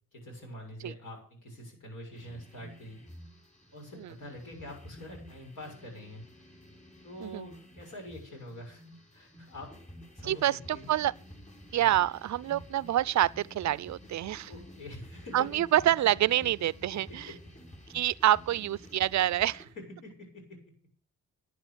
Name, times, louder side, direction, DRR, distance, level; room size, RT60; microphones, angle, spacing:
voice 1, 0.1-3.0 3.7-6.3 7.0-8.8 9.1-9.7 10.1-10.9 11.7-12.0 14.5-15.5 16.9-17.3 19.5-19.6 20.0-20.6, left 1 dB, 70° left, 6.7 m, -45 dB
sound 1, 2.1-19.6, equal, 20° left, 6.3 m, -51 dB
voice 2, 10.3-11.1 11.7-14.5 15.3-17.3 17.9-19.7, right 13 dB, 60° right, 0.5 m, -27 dB
10.5 x 10.5 x 6.9 m
supercardioid pair, 60°, 32 cm